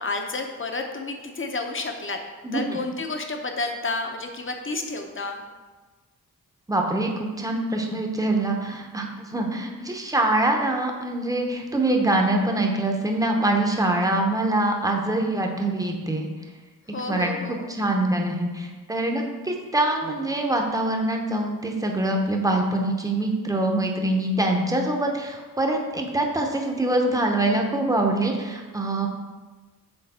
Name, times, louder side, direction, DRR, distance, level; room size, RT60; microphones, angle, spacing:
voice 1, 0.0-2.2 2.5-5.4 16.9-17.7, left 3 dB, 35° left, 4 dB, 0.8 m, -30 dB
voice 2, 2.4-2.8 6.7-16.3 17.1-29.1, right 1 dB, 10° right, 1 dB, 0.9 m, -24 dB
6.8 x 3.5 x 4.2 m, 1.3 s
cardioid pair, 65°, 37 cm